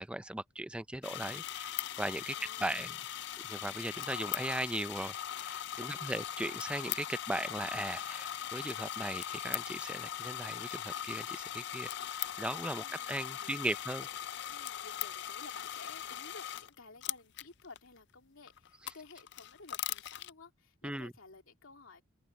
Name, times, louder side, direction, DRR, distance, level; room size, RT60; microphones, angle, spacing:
voice 1, 0.0-2.3 2.6-2.9 3.5-14.1 20.8-21.1, right 1 dB, 5° right, 0.5 m, -38 dB
sound 1, 1.0-16.7 17.0-17.8 18.5-20.3, left 11 dB, 55° left, 0.4 m, -40 dB
voice 2, 2.3-3.0 5.7-6.2 12.7-13.8 14.5-22.0, left 3 dB, 85° left, 2.9 m, -54 dB
head